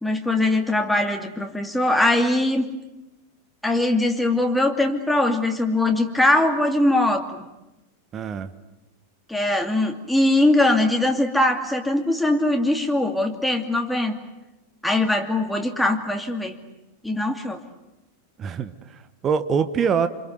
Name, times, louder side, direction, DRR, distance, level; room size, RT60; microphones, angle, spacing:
voice 1, 0.0-2.7 3.6-7.4 9.3-14.2 14.8-16.6 17.0-17.6, left 1 dB, 5° left, 3 dB, 2.6 m, -21 dB
voice 2, 8.1-8.5 18.4-20.1, right 6 dB, 25° right, 12 dB, 1.4 m, -24 dB
27.5 x 26.5 x 8.1 m, 0.97 s
figure-of-eight pair, 90°, 0 cm